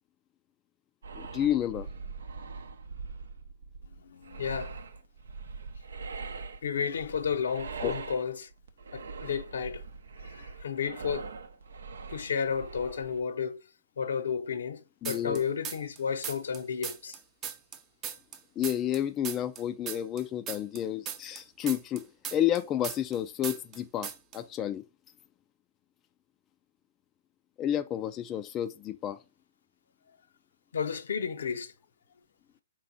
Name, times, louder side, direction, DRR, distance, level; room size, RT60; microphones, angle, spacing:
sound 1, 1.0-13.2, right 4 dB, 75° right, 0.6 m, -42 dB
voice 1, 1.2-1.9 7.8-7.9 15.0-15.4 18.6-22.0 22.3-24.8 27.6-29.2, left 11 dB, 25° left, 0.3 m, -30 dB
voice 2, 4.1-4.7 6.6-8.5 8.9-9.8 10.2-11.3 12.1-13.6 14.0-17.2 30.7-31.7, left 6 dB, 70° left, 0.6 m, -32 dB
sound 2, 15.0-16.0 16.2-19.0 19.2-23.2 23.4-23.8 24.0-24.4, right 8 dB, 25° right, 0.6 m, -38 dB
4.4 x 3.0 x 3.9 m
hypercardioid pair, 130°, 0 cm